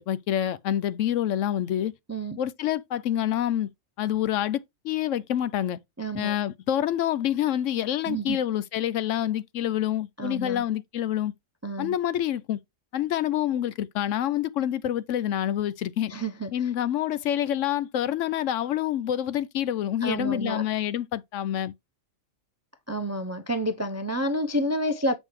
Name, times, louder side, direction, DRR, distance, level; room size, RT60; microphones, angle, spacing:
voice 1, 0.0-1.9 2.4-3.7 4.0-5.8 6.1-11.3 11.8-12.6 12.9-16.1 16.5-21.7, left 11 dB, 75° left, 0.9 m, -27 dB
voice 2, 2.1-2.4 6.0-6.3 8.1-8.4 10.2-10.6 11.6-11.9 16.1-16.5 20.0-20.6 22.9-25.1, right 1 dB, 25° right, 0.3 m, -29 dB
7.1 x 5.2 x 3.1 m
omnidirectional pair, 1.4 m